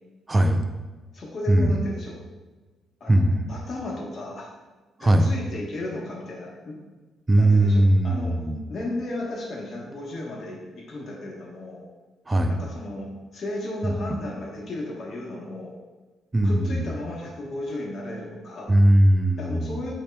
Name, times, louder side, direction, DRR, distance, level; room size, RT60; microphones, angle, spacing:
voice 1, 0.3-0.7 1.5-1.8 3.1-3.5 5.0-5.3 7.3-8.7 12.3-12.6 13.8-14.0 16.3-16.9 18.7-19.9, right 1 dB, 15° right, 5 dB, 0.4 m, -20 dB
voice 2, 1.1-2.2 3.0-3.2 3.5-4.5 5.0-6.8 7.4-8.4 8.7-11.8 12.5-15.7 16.4-18.7 19.4-20.0, left 1 dB, 45° left, -2 dB, 1.1 m, -34 dB
8.2 x 2.8 x 2.3 m, 1.3 s
cardioid pair, 130°, 0 cm